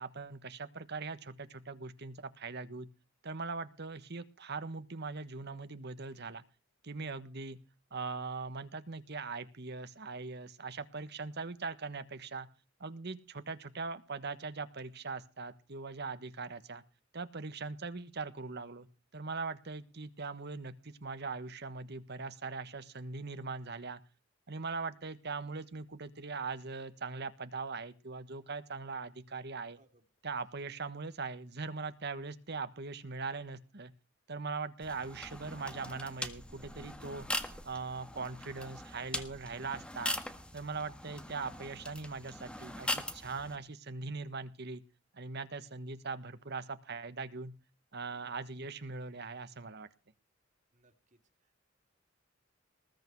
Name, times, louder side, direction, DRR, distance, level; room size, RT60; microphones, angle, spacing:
voice 1, 0.0-2.9 3.2-6.4 6.8-7.6 7.9-12.5 12.8-16.8 17.1-18.9 19.1-24.0 24.5-29.8 30.2-33.9 34.3-40.1 40.5-44.8 45.1-47.5 47.9-49.9, right 4 dB, 60° right, 11 dB, 1.4 m, -41 dB
sound 1, 34.8-43.6, left 1 dB, 5° left, 1.5 m, -41 dB
voice 2, 50.7-51.6, right 2 dB, 40° right, 5 dB, 2.8 m, -68 dB
20.0 x 8.5 x 4.7 m, 0.33 s
head